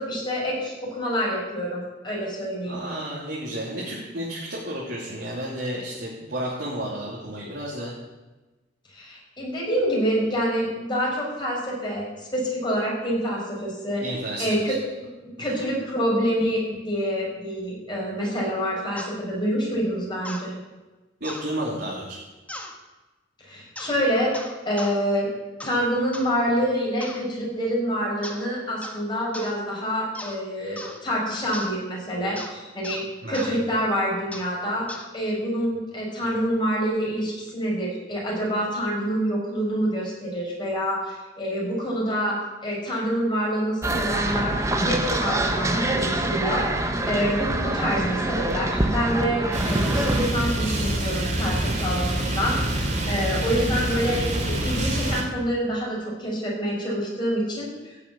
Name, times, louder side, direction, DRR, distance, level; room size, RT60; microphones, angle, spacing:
voice 1, 0.0-2.8 8.9-12.1 12.3-14.0 14.4-14.7 15.2-20.5 23.4-24.3 24.7-25.3 25.6-34.9 35.1-42.4 42.6-44.6 44.8-46.8 47.1-57.9, equal, 25° left, -4 dB, 5.9 m, -27 dB
voice 2, 2.6-7.9 14.0-14.8 15.4-15.5 21.2-22.2 33.2-33.5, right 1 dB, 65° right, -6 dB, 3.0 m, -32 dB
sound 1, 19.0-19.1 20.2-20.5 21.2-21.5 22.5-22.7 23.7-24.0 24.3-25.0 25.6-25.8 26.1-26.3 27.0-27.3 28.2-28.5 28.8-29.0 29.3-29.5 30.1-30.4 30.8-31.0 31.5-31.7 32.4-32.5 32.8-33.0 33.3-33.5 34.3-34.5 34.9-35.1, left 1 dB, 10° left, 1.5 m, -38 dB
sound 2, 43.8-50.3, right 1 dB, 15° right, 1.2 m, -25 dB
sound 3, 49.5-55.2, right 1 dB, 45° right, 3.1 m, -26 dB
15.5 x 7.2 x 8.7 m, 1.1 s
head